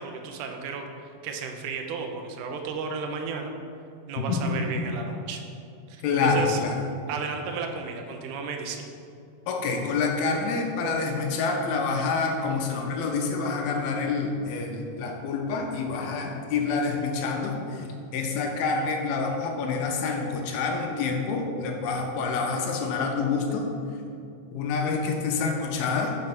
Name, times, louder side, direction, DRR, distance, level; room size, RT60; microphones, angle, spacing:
voice 1, 0.0-3.5 4.1-5.4 5.9-6.6 7.1-8.9, right 5 dB, 80° right, 3 dB, 1.8 m, -34 dB
voice 2, 4.2-4.7 6.0-6.8 9.5-17.9 18.1-23.7 24.5-26.2, left 4 dB, 80° left, 2 dB, 2.6 m, -27 dB
6.3 x 5.4 x 5.9 m, 2.5 s
omnidirectional pair, 4.4 m